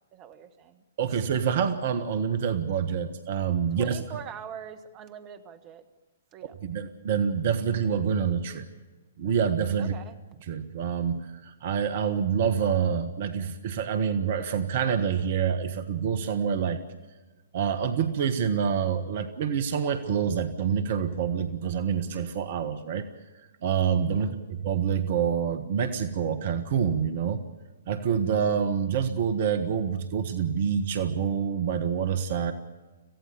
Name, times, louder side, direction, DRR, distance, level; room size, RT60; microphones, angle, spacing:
voice 1, 0.1-0.8 1.3-1.4 3.8-5.8 6.3-6.5 9.8-10.2 24.1-24.3, right 8 dB, 30° right, 10 dB, 1.7 m, -42 dB
voice 2, 1.0-4.0 6.6-8.7 9.2-10.0 10.4-16.8 17.5-23.1 23.6-27.4 27.9-32.5, right 7 dB, 45° right, 10 dB, 1.4 m, -27 dB
26.5 x 16.5 x 7.0 m, 1.2 s
figure-of-eight pair, 120°, 0 cm